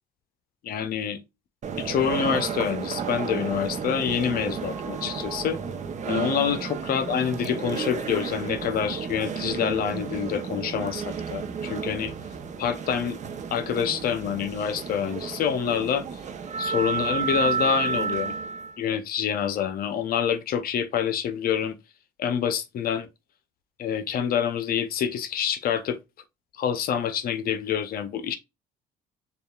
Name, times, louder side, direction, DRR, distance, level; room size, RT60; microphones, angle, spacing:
voice 1, 0.6-1.2 1.8-5.6 6.1-12.1 12.6-13.2 13.5-16.1 16.6-18.3 18.8-21.8 22.2-23.1 23.8-26.0 26.6-28.4, left 8 dB, 55° left, 0.7 m, -27 dB
sound 1, 1.6-18.8, right 6 dB, 45° right, 0.8 m, -32 dB
6.7 x 2.4 x 2.3 m
supercardioid pair, 75°, 18 cm